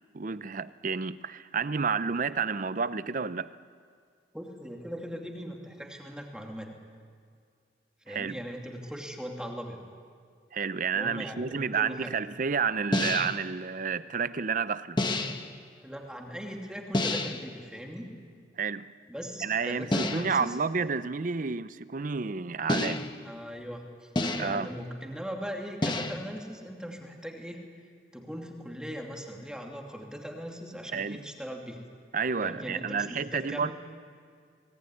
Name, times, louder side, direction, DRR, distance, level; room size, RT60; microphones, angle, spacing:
voice 1, 0.1-3.5 8.1-8.4 10.5-15.0 18.6-18.9 19.4-23.0 24.4-24.7 30.9-31.2 32.1-33.7, right 5 dB, 45° right, 0.6 m, -30 dB
voice 2, 4.3-6.8 8.0-9.9 10.9-12.1 15.8-18.1 19.1-20.6 23.2-24.1 24.4-27.6 28.1-31.8 32.4-33.7, equal, 5° right, 2.6 m, -39 dB
sound 1, 12.9-13.5 15.0-15.5 16.9-17.5 19.9-20.5 22.7-23.3 24.1-24.7 25.8-26.4, left 2 dB, 25° left, 1.2 m, -29 dB
23.5 x 19.0 x 9.8 m
head